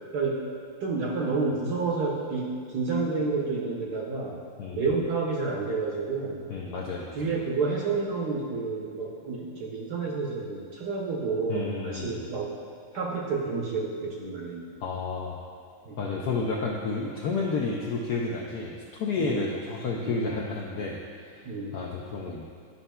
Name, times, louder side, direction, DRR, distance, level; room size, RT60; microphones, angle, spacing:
voice 1, 0.1-0.4 0.8-4.4 4.7-6.4 7.1-12.5 12.9-14.7 15.8-16.0 19.2-19.5 20.0-20.3 21.4-21.8, right 4 dB, 60° right, -3 dB, 1.1 m, -30 dB
voice 2, 6.5-7.1 11.5-12.2 14.8-15.4 16.0-22.4, left 4 dB, 80° left, -2 dB, 0.9 m, -31 dB
10.0 x 5.4 x 2.2 m, 2.2 s
omnidirectional pair, 2.3 m